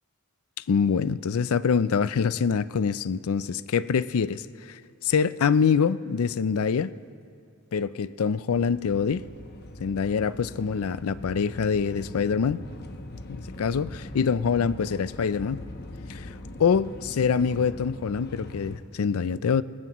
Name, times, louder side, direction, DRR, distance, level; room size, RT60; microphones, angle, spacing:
voice 1, 0.7-6.9 7.7-9.3 9.8-12.6 13.3-15.6 16.1-16.3 16.6-19.6, left 6 dB, 75° left, 0.4 m, -25 dB
sound 1, 8.5-18.8, left 1 dB, 45° left, 1.0 m, -41 dB
25.5 x 16.5 x 3.0 m
head